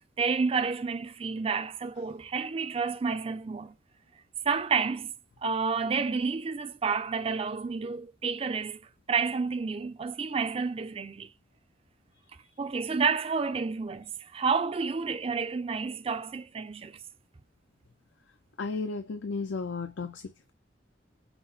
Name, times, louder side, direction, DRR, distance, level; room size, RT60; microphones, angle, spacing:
voice 1, 0.2-3.7 4.4-5.1 5.4-8.8 9.1-11.3 12.6-17.0, right 5 dB, 30° right, 0.4 m, -30 dB
voice 2, 18.6-20.5, left 4 dB, 80° left, 0.5 m, -34 dB
5.9 x 2.0 x 3.9 m
head